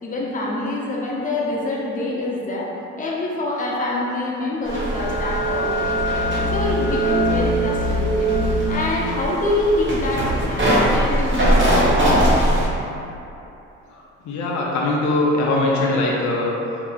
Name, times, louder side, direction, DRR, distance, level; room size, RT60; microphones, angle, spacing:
voice 1, 0.0-2.7 3.0-6.0 6.5-8.4 8.7-12.1, left 2 dB, 25° left, -4 dB, 0.7 m, -25 dB
sound 1, 4.6-12.7, right 1 dB, 40° right, 1.0 m, -20 dB
voice 2, 14.2-16.8, left 2 dB, 70° left, -3 dB, 0.6 m, -21 dB
4.8 x 2.8 x 2.3 m, 2.9 s
cardioid pair, 90°, 30 cm